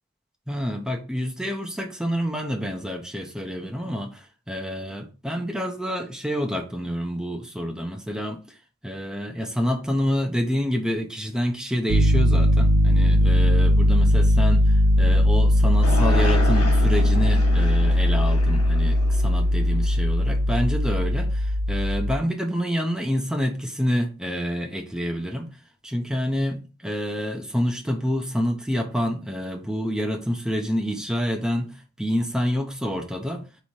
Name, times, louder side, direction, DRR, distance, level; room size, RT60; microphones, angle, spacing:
voice 1, 0.5-8.4 8.8-25.5 25.8-31.7 32.0-33.5, equal, 5° right, 0.6 m, -28 dB
Piano, 11.9-22.2, equal, 80° right, 0.6 m, -19 dB
sound 1, 15.8-20.2, left 2 dB, 75° left, 1.0 m, -32 dB
3.4 x 3.1 x 4.2 m
head